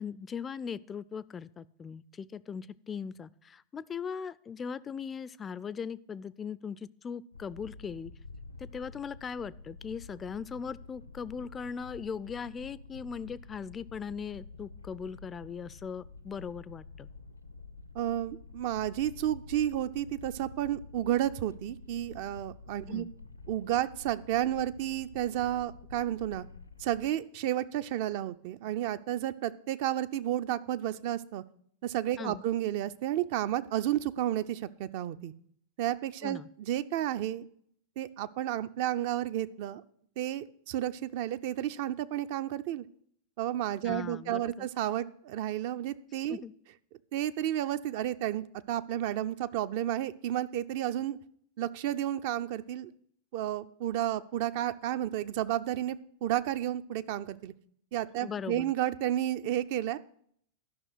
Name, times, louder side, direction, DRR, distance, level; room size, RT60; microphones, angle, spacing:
voice 1, 0.0-8.1 8.6-17.1 22.9-23.1 32.2-32.4 36.2-36.5 43.8-44.7 46.3-46.5 58.2-58.7, left 6 dB, 20° left, 19 dB, 0.3 m, -39 dB
sound 1, 7.3-27.1, left 3 dB, 85° left, 0.7 m, -49 dB
voice 2, 17.9-23.0 23.5-26.4 26.8-31.4 31.8-35.3 35.8-37.4 38.0-39.8 40.2-42.9 43.4-46.4 47.1-51.2 51.6-52.9 53.3-57.5 57.9-60.0, right 12 dB, 50° right, 13 dB, 0.5 m, -32 dB
12.0 x 6.0 x 6.2 m, 0.65 s
figure-of-eight pair, 90°, 0 cm